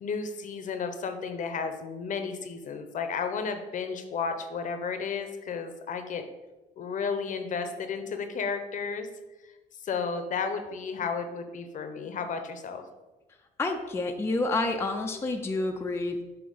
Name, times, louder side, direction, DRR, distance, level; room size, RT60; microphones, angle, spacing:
voice 1, 0.0-6.2 6.8-9.1 9.8-12.8, left 5 dB, 50° left, 7 dB, 0.8 m, -33 dB
voice 2, 13.6-16.2, left 2 dB, 15° left, 3 dB, 0.5 m, -29 dB
7.6 x 2.9 x 5.4 m, 1.1 s
cardioid pair, 110°, 17 cm